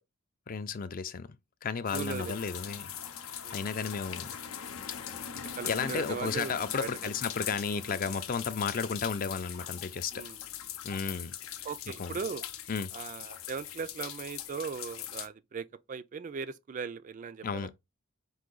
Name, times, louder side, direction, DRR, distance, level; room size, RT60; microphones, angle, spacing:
voice 1, 0.5-1.3 1.6-2.9 3.5-4.4 5.7-10.2 10.8-11.3 12.0-12.2 12.7-12.9 17.4-17.7, left 5 dB, 45° left, 0.4 m, -33 dB
sound 1, 1.9-15.3, left 10 dB, 90° left, 0.6 m, -41 dB
voice 2, 1.9-2.3 3.4-3.6 5.6-6.9 10.1-10.4 11.6-12.4 12.9-17.7, right 5 dB, 40° right, 0.3 m, -38 dB
4.7 x 2.7 x 3.8 m
head